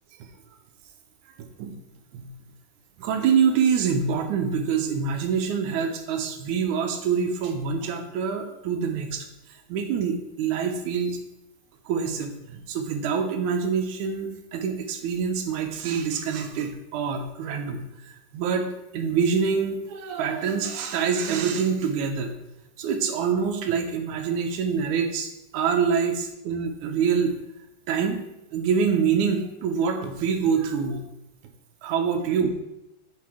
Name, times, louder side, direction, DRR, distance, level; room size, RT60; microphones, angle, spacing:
voice 1, 3.0-9.3 9.7-11.2 11.9-22.4 22.8-27.4 27.9-28.2 28.5-31.1 31.8-32.5, right 6 dB, 75° right, 4 dB, 2.0 m, -25 dB
9.4 x 3.7 x 4.8 m, 0.90 s
omnidirectional pair, 4.0 m